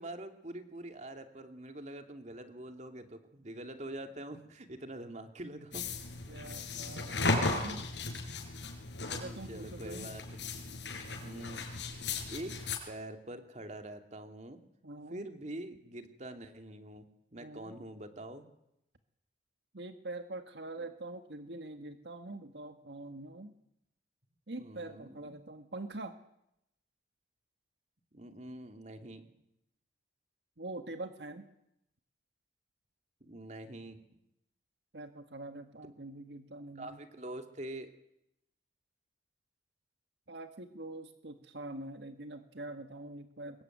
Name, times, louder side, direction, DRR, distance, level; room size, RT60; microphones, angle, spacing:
voice 1, 0.0-5.9 9.2-10.5 11.2-11.7 12.3-14.6 15.1-17.0 17.3-18.5 20.8-20.9 24.6-25.4 28.1-29.3 33.2-34.0 36.7-37.9, right 1 dB, 40° right, 6 dB, 2.6 m, -45 dB
sound 1, 5.7-12.8, left 3 dB, 85° left, 6.1 m, -36 dB
voice 2, 6.3-7.8 9.1-10.1 14.8-15.3 17.4-17.7 19.7-23.5 24.5-26.2 30.6-31.4 34.9-37.0 40.3-43.6, right 2 dB, 75° right, 7 dB, 1.6 m, -44 dB
25.0 x 22.0 x 9.3 m, 0.81 s
head